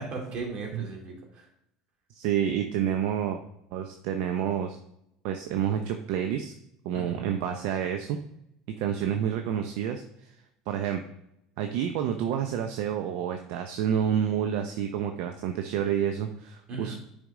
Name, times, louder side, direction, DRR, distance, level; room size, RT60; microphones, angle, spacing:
voice 1, 0.0-1.5 6.9-7.3 9.0-9.1 16.7-17.0, right 3 dB, 50° right, 0 dB, 2.7 m, -37 dB
voice 2, 2.1-3.4 3.7-4.8 5.2-6.5 6.8-8.2 8.8-10.0 10.7-11.0 11.6-16.9, right 9 dB, 70° right, 6 dB, 0.6 m, -29 dB
9.7 x 5.1 x 3.7 m, 0.80 s
supercardioid pair, 90°, 2 cm